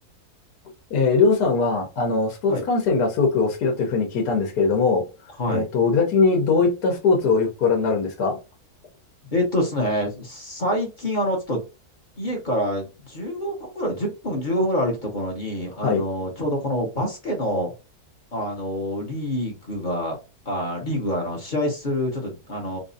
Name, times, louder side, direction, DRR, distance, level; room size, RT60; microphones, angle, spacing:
voice 1, 0.9-5.0 5.5-8.4 15.8-16.0, left 4 dB, 75° left, 1.4 m, -21 dB
voice 2, 9.3-11.7 12.2-17.7 18.3-20.2 20.4-22.8, equal, 35° left, 1.0 m, -26 dB
4.1 x 2.5 x 2.6 m
omnidirectional pair, 1.7 m